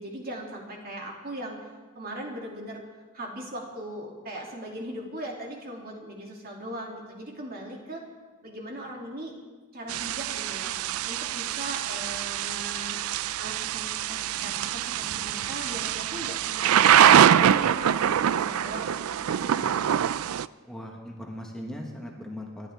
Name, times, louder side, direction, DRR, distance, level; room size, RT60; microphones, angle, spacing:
voice 1, 0.0-1.6 1.9-2.8 3.1-8.0 8.4-9.3 9.7-10.7 11.0-13.0 13.4-16.8 17.1-20.1, right 1 dB, 45° right, -1 dB, 2.6 m, -39 dB
Thunder / Rain, 9.9-20.5, right 9 dB, 90° right, 0.4 m, -24 dB
voice 2, 20.7-22.7, left 1 dB, 5° left, -1 dB, 1.4 m, -39 dB
27.0 x 11.5 x 3.5 m, 1.3 s
head